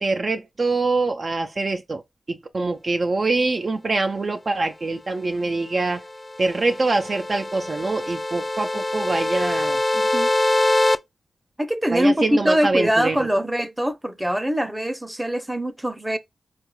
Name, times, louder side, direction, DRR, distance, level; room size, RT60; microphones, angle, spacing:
voice 1, 0.0-2.0 2.3-6.0 6.4-9.8 11.9-13.3, right 3 dB, 45° right, 0.5 m, -24 dB
sound 1, 6.0-11.0, left 2 dB, 20° left, 0.3 m, -24 dB
voice 2, 9.9-10.3 11.6-16.2, equal, 10° right, 0.7 m, -23 dB
4.5 x 2.4 x 3.0 m
cardioid pair, 60°, 0 cm